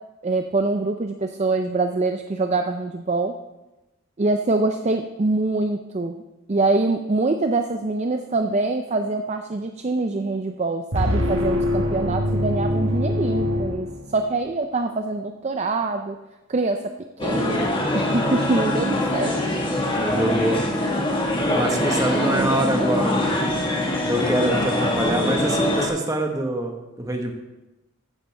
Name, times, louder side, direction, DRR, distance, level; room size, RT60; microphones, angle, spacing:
voice 1, 0.2-3.3 4.2-6.2 6.5-13.9 14.1-16.2 16.5-16.9 17.2-19.3 22.2-23.1, right 3 dB, 35° right, 6 dB, 0.5 m, -24 dB
sound 1, 10.9-14.4, left 1 dB, 70° right, 1.6 m, -24 dB
sound 2, 17.2-25.9, left 1 dB, 25° left, 1.5 m, -23 dB
voice 2, 20.0-20.6 21.5-23.4 24.1-27.3, right 1 dB, 15° right, 2 dB, 1.3 m, -25 dB
14.5 x 9.8 x 3.4 m, 1.0 s
head